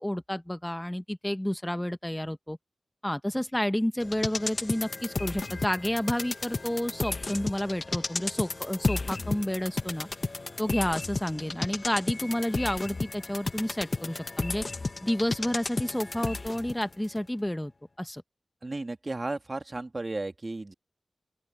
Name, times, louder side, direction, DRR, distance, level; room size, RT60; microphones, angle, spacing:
voice 1, 0.0-2.6 3.0-10.1 10.6-14.6 15.0-17.7 18.0-18.2, left 1 dB, 10° left, 0.9 m, -30 dB
sound 1, 4.0-16.8 17.2-17.3, left 3 dB, 45° left, 1.0 m, -33 dB
voice 2, 18.6-20.7, right 2 dB, 40° right, 1.8 m, -34 dB
open air
wide cardioid pair, 65°, 0 cm